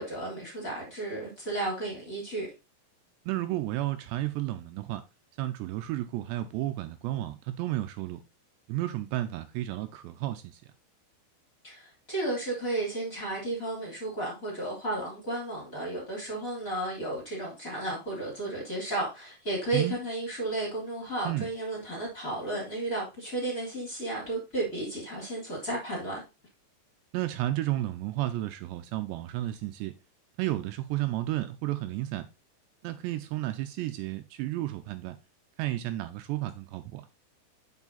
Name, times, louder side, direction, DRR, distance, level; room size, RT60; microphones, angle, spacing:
voice 1, 0.0-2.5 11.6-26.2, right 2 dB, 20° left, 3.0 m, -33 dB
voice 2, 3.3-5.0 5.4-8.2 8.7-10.6 19.7-20.0 21.3-21.5 27.1-29.9 30.4-32.3 32.8-35.2 35.6-37.1, right 15 dB, 85° right, 2.7 m, -32 dB
7.2 x 5.7 x 4.0 m
omnidirectional pair, 5.2 m